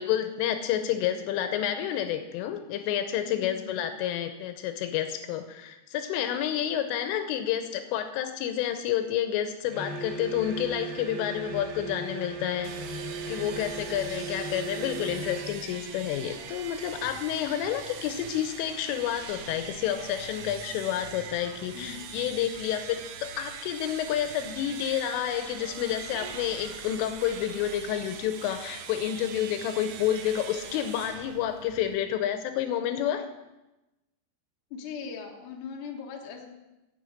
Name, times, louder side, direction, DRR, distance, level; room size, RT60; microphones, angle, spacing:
voice 1, 0.0-12.7 13.3-33.3, left 10 dB, 80° left, 8 dB, 3.2 m, -29 dB
voice 2, 3.3-3.7 13.2-13.8 21.7-22.1 34.7-36.5, left 6 dB, 65° left, 1 dB, 2.0 m, -40 dB
sound 1, 9.7-15.6, right 3 dB, 65° right, 3.7 m, -37 dB
sound 2, 12.6-32.1, right 7 dB, 85° right, 2.3 m, -42 dB
11.0 x 7.9 x 7.7 m, 1.0 s
omnidirectional pair, 5.9 m